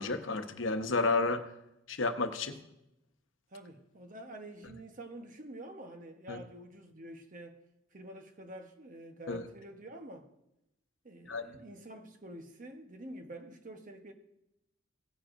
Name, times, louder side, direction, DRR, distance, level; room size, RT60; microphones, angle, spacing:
voice 1, 0.0-1.5 1.9-2.6 6.3-6.4 9.3-9.4 11.3-11.4, left 3 dB, 85° left, 7 dB, 0.9 m, -31 dB
voice 2, 3.5-7.6 7.9-10.3 11.0-14.1, right 1 dB, 45° right, 5 dB, 1.1 m, -48 dB
16.5 x 9.4 x 2.6 m, 0.85 s
head